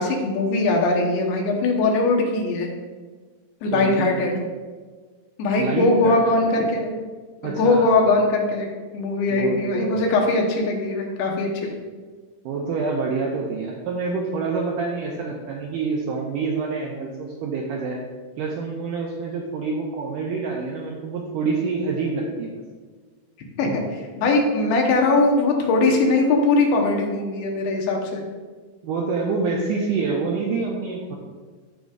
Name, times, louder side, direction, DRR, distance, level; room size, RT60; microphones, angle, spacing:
voice 1, 0.0-2.7 3.6-4.4 5.4-6.9 7.4-8.7 8.9-11.7 23.6-28.2, left 2 dB, 75° left, 1 dB, 2.9 m, -21 dB
voice 2, 3.7-4.1 5.6-6.3 7.4-8.2 9.3-10.1 12.5-18.0 18.4-22.6 28.8-31.2, right 4 dB, 80° right, -2 dB, 1.9 m, -27 dB
15.0 x 5.2 x 2.4 m, 1.4 s
omnidirectional pair, 4.6 m